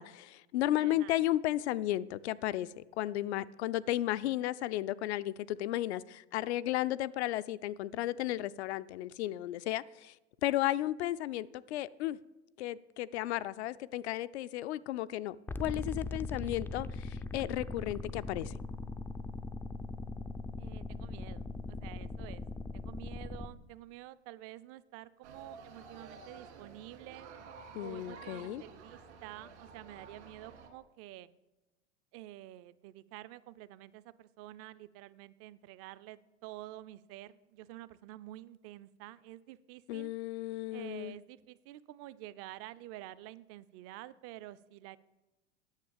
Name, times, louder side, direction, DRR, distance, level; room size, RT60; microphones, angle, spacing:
voice 1, 0.0-10.1 10.4-12.2 12.6-18.5 27.7-28.6 39.9-41.2, left 14 dB, 65° left, 16 dB, 0.6 m, -34 dB
voice 2, 0.8-1.2 20.6-22.4 22.7-27.3 27.8-31.3 32.1-40.1 40.7-45.0, right 15 dB, 40° right, 17 dB, 0.6 m, -49 dB
sound 1, 15.5-23.5, left 3 dB, 5° left, 0.4 m, -40 dB
sound 2, 25.2-30.7, right 5 dB, 70° right, 2.2 m, -51 dB
9.9 x 6.9 x 7.2 m, 1.1 s
hypercardioid pair, 95°, 35 cm